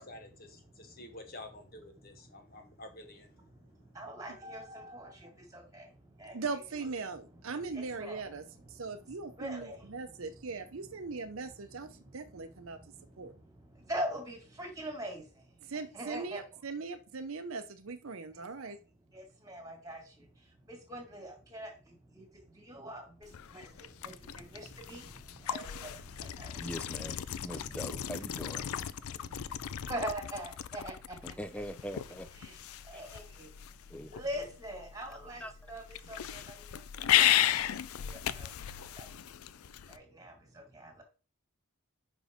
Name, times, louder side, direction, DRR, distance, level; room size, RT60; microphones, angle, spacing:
voice 1, 0.0-4.0, left 2 dB, 40° left, 1.2 m, -50 dB
voice 2, 0.5-1.1 2.2-2.6 3.5-6.4 7.7-10.4 10.9-11.0 11.3-16.4 18.3-18.7 19.1-26.7 27.2-27.8 28.7-31.2 32.4-41.0, right 1 dB, 15° right, 1.9 m, -44 dB
voice 3, 6.3-12.8 13.2-13.3 15.6-18.8, right 4 dB, 70° right, 0.7 m, -40 dB
sound 1, 23.2-40.0, left 11 dB, 80° left, 0.4 m, -35 dB
voice 4, 26.5-28.7 31.2-32.3 32.9-33.0 33.9-34.1 35.1-35.7, equal, 5° left, 0.4 m, -43 dB
5.5 x 5.1 x 5.0 m
head